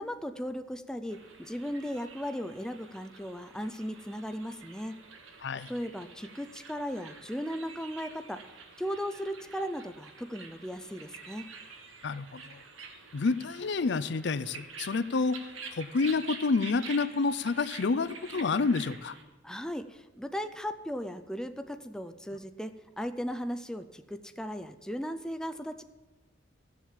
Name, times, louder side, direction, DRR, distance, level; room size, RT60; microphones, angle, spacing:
voice 1, 0.0-5.0 5.7-8.4 8.8-11.5 19.4-25.8, equal, 5° left, 8 dB, 0.4 m, -37 dB
sound 1, 1.1-19.2, right 5 dB, 90° right, 1.6 m, -48 dB
voice 2, 12.0-12.6 13.1-15.4 15.8-19.1, left 4 dB, 60° left, 15 dB, 0.5 m, -29 dB
14.5 x 7.2 x 7.4 m, 1.2 s
head